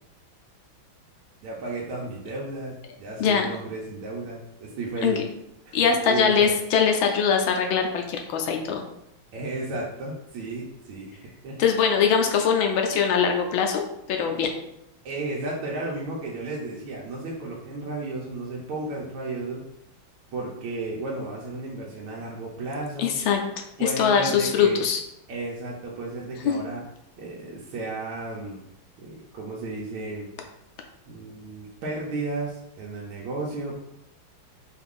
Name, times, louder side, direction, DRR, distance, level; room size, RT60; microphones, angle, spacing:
voice 1, 1.4-5.2 5.7-6.5 9.3-11.6 15.0-19.6 20.3-23.1 23.8-24.8 25.3-26.8 27.2-28.6 29.0-30.3 31.0-33.8, right 2 dB, 90° right, -3 dB, 1.6 m, -33 dB
voice 2, 5.7-8.8 11.6-13.8 14.1-14.5 23.0-23.4 23.8-25.0 26.4-26.5, left 6 dB, 75° left, 3 dB, 1.3 m, -22 dB
4.8 x 2.4 x 3.6 m, 0.82 s
omnidirectional pair, 2.3 m